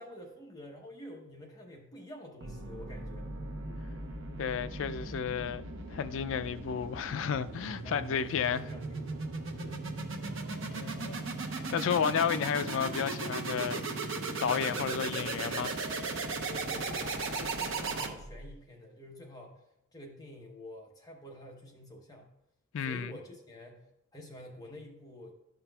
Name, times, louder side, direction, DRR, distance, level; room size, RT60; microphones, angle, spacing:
voice 1, 0.0-3.3 3.6-3.9 7.8-9.1 9.5-9.8 10.1-10.4 16.4-19.6 19.9-22.3 22.8-25.3, left 1 dB, 15° left, 0.9 m, -49 dB
sound 1, 2.4-18.5, right 3 dB, 65° right, 0.8 m, -37 dB
voice 2, 4.4-8.6 10.7-11.2 11.7-13.8 14.4-15.8 22.7-23.1, left 7 dB, 65° left, 0.3 m, -32 dB
12.0 x 5.7 x 2.3 m
head